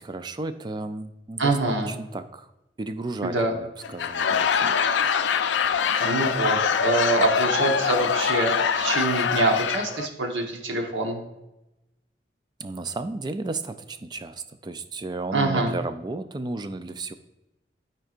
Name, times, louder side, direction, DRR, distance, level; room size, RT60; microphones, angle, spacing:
voice 1, 0.0-2.5 2.8-4.8 12.6-17.1, right 2 dB, 25° right, 10 dB, 0.3 m, -34 dB
voice 2, 1.4-1.9 3.2-3.5 6.0-11.2 15.3-15.7, right 2 dB, 90° right, 2 dB, 1.1 m, -25 dB
Laughter / Crowd, 3.8-10.1, left 7 dB, 80° left, 0.4 m, -24 dB
12.0 x 4.4 x 2.5 m, 0.94 s
head